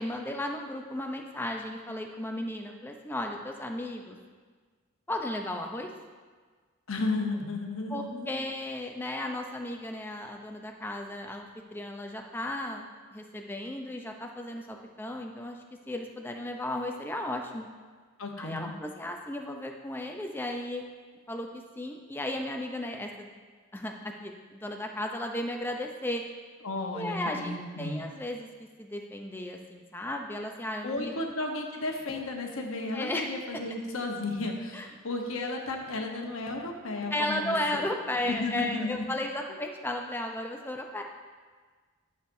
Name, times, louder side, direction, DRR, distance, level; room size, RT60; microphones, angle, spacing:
voice 1, 0.0-4.2 5.1-5.9 7.9-12.8 13.1-15.6 15.9-17.7 18.4-20.8 21.3-23.3 23.7-26.2 26.9-28.5 28.8-31.1 32.9-33.3 34.7-34.9 37.1-41.0, left 1 dB, 10° left, 2 dB, 0.5 m, -35 dB
voice 2, 6.9-8.3 18.2-18.7 26.6-28.0 30.8-37.6 38.3-39.1, left 2 dB, 75° left, 2 dB, 1.0 m, -33 dB
12.0 x 6.5 x 2.6 m, 1.5 s
head